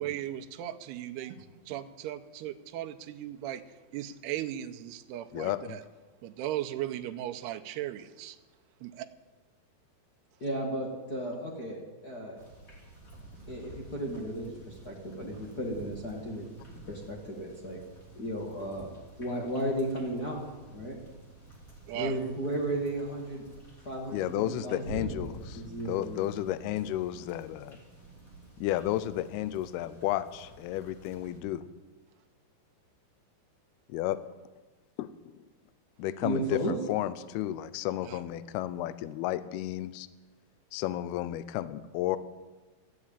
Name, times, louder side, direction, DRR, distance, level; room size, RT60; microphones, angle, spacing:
voice 1, 0.0-3.6 3.9-5.8 6.2-8.4 8.8-9.1 21.9-22.2 38.0-38.2, right 12 dB, 80° right, 7 dB, 2.6 m, -37 dB
voice 2, 5.3-5.8 24.1-27.8 28.6-31.7 33.9-34.2 35.0-35.1 36.0-40.1 40.7-42.2, left 13 dB, 80° left, 14 dB, 2.4 m, -32 dB
voice 3, 10.4-12.4 13.5-16.5 16.8-17.8 18.1-18.9 19.2-20.4 20.7-21.0 21.9-23.4 23.8-26.2 36.2-36.8, right 1 dB, 45° left, -2 dB, 1.2 m, -34 dB
sound 1, 12.4-31.4, right 2 dB, 25° left, 2.7 m, -49 dB
13.5 x 9.7 x 8.7 m, 1.2 s
omnidirectional pair, 4.9 m